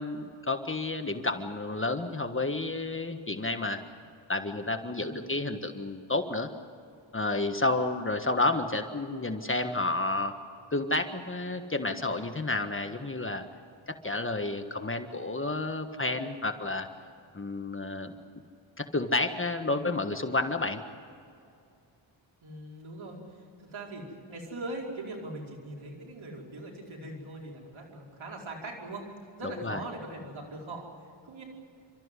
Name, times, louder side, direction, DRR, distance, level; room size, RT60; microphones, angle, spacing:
voice 1, 0.0-3.8 4.3-6.5 7.1-10.4 10.7-13.4 13.9-16.9 17.3-18.2 18.8-20.8 29.4-29.8, left 2 dB, 25° left, 6 dB, 1.5 m, -30 dB
voice 2, 22.4-29.1 29.4-30.9 31.2-31.4, right 2 dB, 75° right, -1 dB, 5.0 m, -41 dB
29.0 x 13.5 x 9.8 m, 2.5 s
cardioid pair, 75°, 47 cm